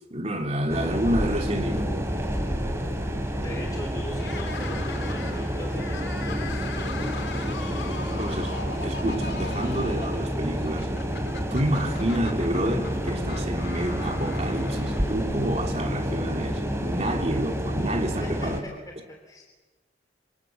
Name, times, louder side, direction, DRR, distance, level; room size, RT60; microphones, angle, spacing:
voice 1, 0.1-1.9 8.2-10.9 11.5-18.6, right 1 dB, 40° right, 3.1 m, -29 dB
sound 1, 0.7-18.6, equal, 15° right, 3.2 m, -29 dB
voice 2, 3.4-8.3 18.2-18.5 19.2-19.4, left 1 dB, 20° left, 3.3 m, -42 dB
sound 2, 4.2-15.4, left 4 dB, 85° left, 1.9 m, -40 dB
27.0 x 26.0 x 7.6 m
head